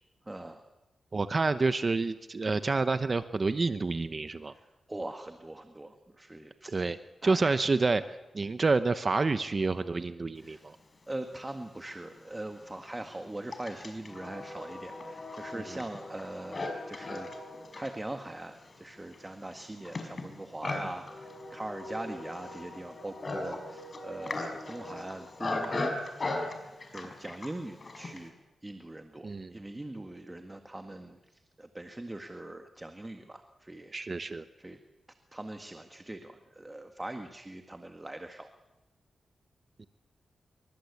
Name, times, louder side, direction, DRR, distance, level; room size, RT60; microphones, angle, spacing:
voice 1, 0.3-0.6 4.9-6.7 7.2-7.6 10.4-10.7 11.1-17.3 17.7-28.3 28.6-33.9 34.6-34.8 35.3-38.5, right 1 dB, 15° right, 6 dB, 1.8 m, -41 dB
voice 2, 1.1-4.5 6.7-7.0 7.2-10.8 15.5-15.8 29.2-29.6 33.9-34.5 39.8-39.9, right 3 dB, 35° right, 11 dB, 0.9 m, -28 dB
Livestock farm animals working animals, 11.5-11.6 12.4-28.3, left 2 dB, 40° left, 5.6 m, -38 dB
27.0 x 24.0 x 8.5 m, 1.1 s
wide cardioid pair, 110°, 0 cm